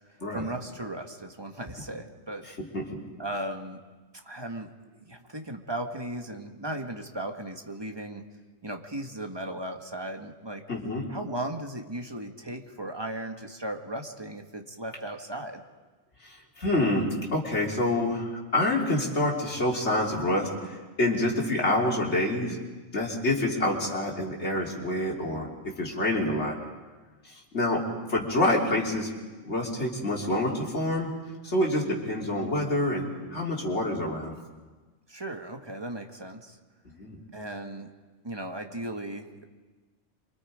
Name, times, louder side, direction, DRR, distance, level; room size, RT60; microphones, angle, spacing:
voice 1, 0.1-2.5 3.2-3.8 4.2-4.7 5.0-8.3 8.6-10.6 11.1-15.6 35.1-36.6 37.3-37.9 38.2-39.5, right 1 dB, 20° right, 4 dB, 1.7 m, -36 dB
voice 2, 10.7-11.0 16.2-22.6 22.9-26.6 27.3-29.1 29.4-31.1 31.5-34.3 36.9-37.2, left 1 dB, 65° left, -1 dB, 3.7 m, -27 dB
27.5 x 25.0 x 5.0 m, 1.3 s
omnidirectional pair, 1.3 m